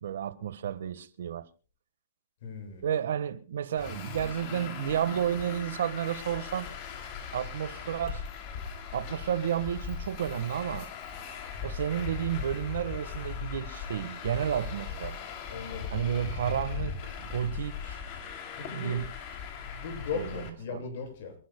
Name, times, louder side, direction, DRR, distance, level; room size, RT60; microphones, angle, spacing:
voice 1, 0.0-1.5 2.8-6.7 7.3-8.2 8.9-10.9 11.6-15.2 15.9-18.0 18.7-19.1 20.1-20.8, right 9 dB, 75° right, 1.4 m, -31 dB
voice 2, 2.4-2.9 15.5-15.9 18.6-19.0 19.7-21.4, left 5 dB, 60° left, 7.2 m, -38 dB
Traffic noise roadway noise, 3.8-20.5, left 6 dB, 40° left, 2.9 m, -39 dB
28.5 x 11.5 x 2.3 m
hypercardioid pair, 160°, 0 cm